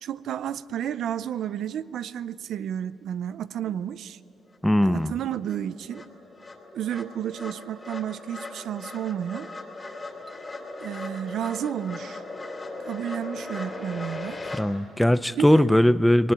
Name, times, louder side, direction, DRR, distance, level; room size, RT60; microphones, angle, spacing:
voice 1, 0.0-4.2 4.8-6.1 6.7-9.5 10.8-12.2 12.8-14.5 15.4-15.7, right 10 dB, 70° right, 16 dB, 0.5 m, -31 dB
sound 1, 4.5-4.6 5.0-14.6, left 2 dB, 25° left, 2.6 m, -38 dB
voice 2, 4.6-5.1 14.6-16.3, left 1 dB, 5° left, 15 dB, 0.5 m, -20 dB
sound 2, 10.3-11.5, left 3 dB, 20° right, 2.6 m, -55 dB
20.0 x 19.5 x 9.4 m, 2.5 s
cardioid pair, 90°, 0 cm